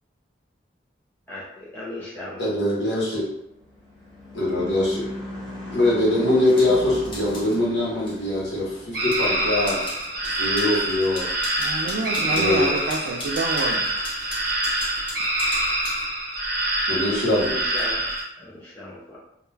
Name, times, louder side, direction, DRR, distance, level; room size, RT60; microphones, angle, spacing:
voice 1, 1.3-2.4 17.5-18.0 18.4-19.2, left 2 dB, 10° left, -7 dB, 0.4 m, -36 dB
voice 2, 2.4-3.2 4.3-5.1 5.7-9.8 10.4-11.3 12.4-12.7 16.9-17.5, left 1 dB, 70° left, -5 dB, 0.9 m, -22 dB
Car passing by / Truck / Engine, 3.1-11.7, left 1 dB, 25° right, 0.8 m, -39 dB
sound 1, 6.5-7.6 8.0-9.2 9.6-16.1 17.3-18.2, left 1 dB, 25° left, 0.8 m, -39 dB
sound 2, 8.9-18.2, right 1 dB, 55° right, 0.8 m, -25 dB
voice 3, 11.6-13.9, right 3 dB, 75° right, -1 dB, 0.3 m, -28 dB
2.2 x 2.1 x 3.2 m, 0.82 s
head